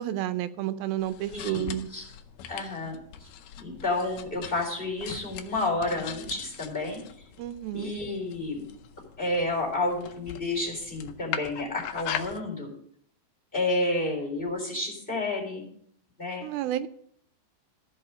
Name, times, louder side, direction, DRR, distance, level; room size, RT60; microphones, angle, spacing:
voice 1, 0.0-1.9 7.4-7.9 16.4-16.9, right 12 dB, 90° right, 12 dB, 2.5 m, -31 dB
sound 1, 1.0-12.4, left 9 dB, 75° left, 2.2 m, -41 dB
voice 2, 1.3-2.0 2.5-2.9 3.2-3.3 3.6-7.0 7.7-8.6 9.2-12.7 13.5-15.7 16.2-16.5, left 2 dB, 15° left, -1 dB, 3.7 m, -30 dB
14.5 x 5.5 x 6.6 m, 0.65 s
omnidirectional pair, 4.1 m